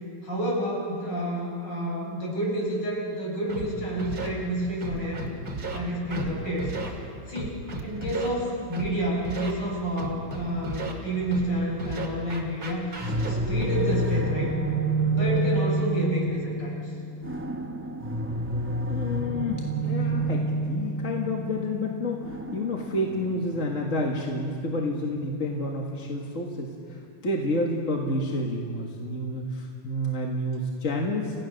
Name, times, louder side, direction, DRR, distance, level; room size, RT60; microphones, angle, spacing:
voice 1, 0.2-5.2 5.7-6.7 7.3-14.5 15.1-16.9, right 1 dB, 65° left, -3 dB, 6.2 m, -29 dB
Scratching (performance technique), 3.5-3.6 4.0-4.3 4.8-5.8 6.1-6.3 6.6-6.9 7.3-8.3 8.7-8.9 9.2-9.5 10.0-10.9 11.3-11.5 11.8-13.6, right 3 dB, 50° right, 2.9 m, -33 dB
sound 1, 13.0-25.8, right 2 dB, 15° right, 0.4 m, -29 dB
voice 2, 18.9-31.4, left 1 dB, 40° left, 0 dB, 1.9 m, -29 dB
29.5 x 16.0 x 6.5 m, 2.3 s
omnidirectional pair, 2.1 m